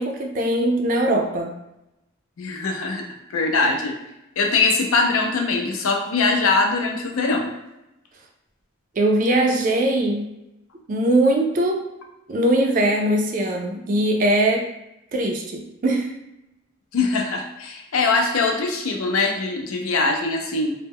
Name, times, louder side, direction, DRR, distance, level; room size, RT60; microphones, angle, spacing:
voice 1, 0.0-1.5 9.0-10.3 10.9-11.9 12.3-14.7 15.1-16.1, right 1 dB, 40° right, 2 dB, 0.3 m, -21 dB
voice 2, 2.4-3.0 3.3-3.9 4.4-7.5 16.9-20.7, left 3 dB, 85° left, 2 dB, 0.5 m, -22 dB
2.1 x 2.0 x 3.4 m, 0.90 s
head